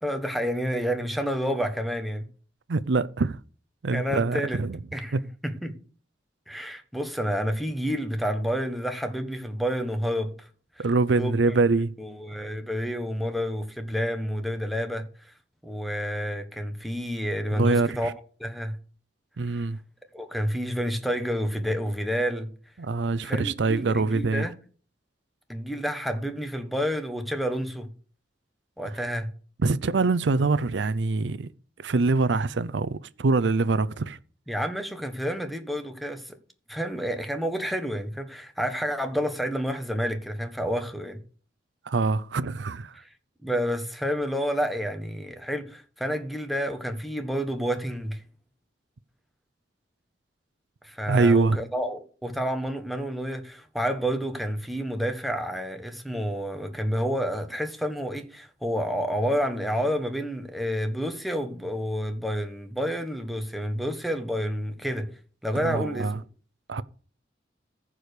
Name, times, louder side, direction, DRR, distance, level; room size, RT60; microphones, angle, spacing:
voice 1, 0.0-2.2 3.9-4.6 4.9-5.2 5.4-5.8 6.5-10.5 10.8-10.9 11.1-11.6 12.0-15.3 15.6-18.1 18.4-18.8 19.4-19.7 20.1-22.5 23.2-24.6 25.5-27.9 28.8-29.3 34.5-36.4 36.7-41.2 43.0-43.1 43.4-48.2 50.8-65.1 65.4-66.1, equal, ahead, 1.4 m, -29 dB
voice 2, 2.7-3.4 3.8-4.8 5.1-5.2 10.8-11.9 17.5-18.1 19.4-19.8 22.8-24.5 28.9-29.0 29.6-31.5 31.8-34.2 41.9-43.0 51.1-51.6 65.6-66.2 66.7-66.8, right 3 dB, 80° right, 0.6 m, -24 dB
14.0 x 5.0 x 6.6 m
head